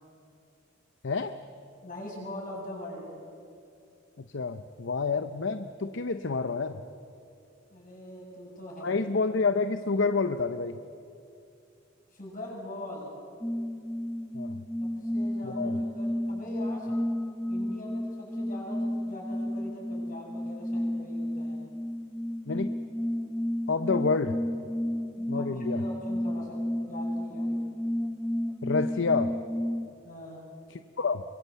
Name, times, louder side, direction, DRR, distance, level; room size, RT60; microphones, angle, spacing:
voice 1, 1.0-1.3 4.2-6.8 8.8-10.8 14.3-14.6 15.4-15.8 22.5-22.7 23.7-24.4 25.3-25.8 28.6-29.3 30.7-31.2, left 4 dB, 65° left, 9 dB, 0.8 m, -29 dB
voice 2, 1.8-3.1 7.7-9.0 12.1-13.1 14.8-17.0 17.5-21.6 25.1-26.6 26.9-27.6 30.0-30.4, left 1 dB, 45° left, -2 dB, 7.9 m, -42 dB
sound 1, 13.4-29.9, left 1 dB, 5° left, 0.5 m, -32 dB
25.0 x 23.5 x 8.2 m, 2.6 s
head